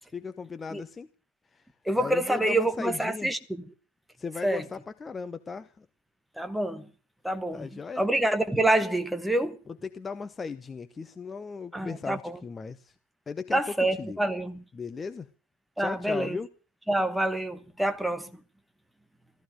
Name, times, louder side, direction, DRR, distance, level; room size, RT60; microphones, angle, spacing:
voice 1, 0.1-1.1 1.9-3.3 4.2-5.9 7.5-8.0 9.7-12.9 13.3-13.6 14.0-14.2 14.7-15.3 15.8-16.5, left 5 dB, 15° left, 0.8 m, -37 dB
voice 2, 1.9-3.6 4.4-4.7 6.4-6.9 7.2-7.7 8.0-9.6 11.7-12.4 13.5-14.6 15.8-16.4 16.9-18.3, right 1 dB, ahead, 1.2 m, -27 dB
15.5 x 14.0 x 6.5 m
figure-of-eight pair, 90°, 0 cm